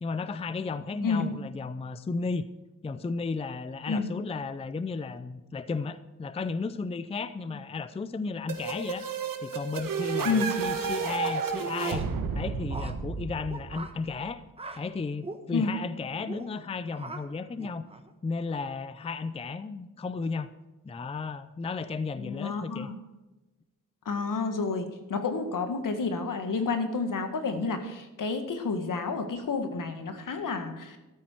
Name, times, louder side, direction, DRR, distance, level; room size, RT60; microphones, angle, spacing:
voice 1, 0.0-2.5 2.8-9.0 9.4-12.1 12.3-14.4 14.8-17.9 18.2-20.5 20.8-22.9, left 4 dB, 20° left, 14 dB, 0.4 m, -34 dB
sound 1, 8.5-14.1, right 5 dB, 80° right, 1.5 m, -32 dB
sound 2, 10.1-10.4 11.2-12.1 12.7-12.9 13.5-13.9 14.6-14.8 15.2-15.4 16.2-16.5 16.9-17.2 17.6-18.1, right 2 dB, 20° right, 1.1 m, -41 dB
voice 2, 22.2-23.0 24.1-31.0, left 4 dB, 70° left, 7 dB, 1.8 m, -30 dB
13.0 x 13.0 x 4.6 m, 1.1 s
wide cardioid pair, 160°, 33 cm